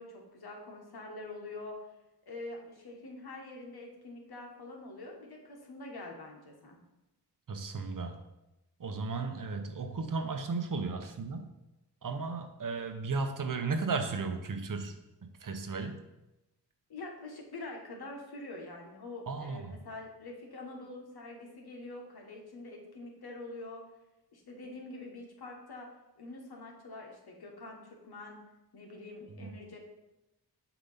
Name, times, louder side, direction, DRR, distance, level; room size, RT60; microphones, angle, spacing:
voice 1, 0.0-1.8 2.3-6.8 16.9-23.8 24.3-25.9 26.2-28.4 28.7-29.8, left 2 dB, 65° left, 0 dB, 1.4 m, -45 dB
voice 2, 7.5-8.2 8.8-11.5 12.0-14.9 15.4-16.0 19.3-19.8 29.4-29.5, right 4 dB, 50° right, 6 dB, 0.8 m, -35 dB
6.8 x 3.0 x 5.5 m, 0.96 s
cardioid pair, 50°, 40 cm